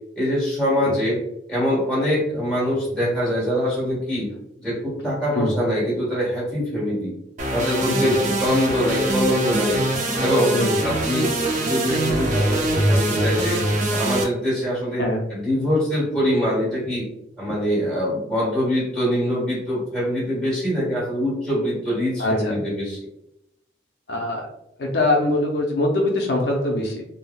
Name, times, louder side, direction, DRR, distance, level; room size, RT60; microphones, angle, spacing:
voice 1, 0.1-1.2 1.5-4.3 4.6-7.2 7.5-9.8 10.2-10.5 10.8-13.6 13.9-15.0 15.3-17.1 17.4-23.0, equal, 5° left, -8 dB, 1.5 m, -23 dB
sound 1, 7.4-14.2, right 1 dB, 45° right, 0.5 m, -23 dB
voice 2, 7.9-8.2 10.5-10.8 15.0-15.2 22.2-22.6 24.1-24.5 24.8-27.1, left 2 dB, 70° left, -1 dB, 0.5 m, -22 dB
3.4 x 2.0 x 2.2 m, 0.85 s
head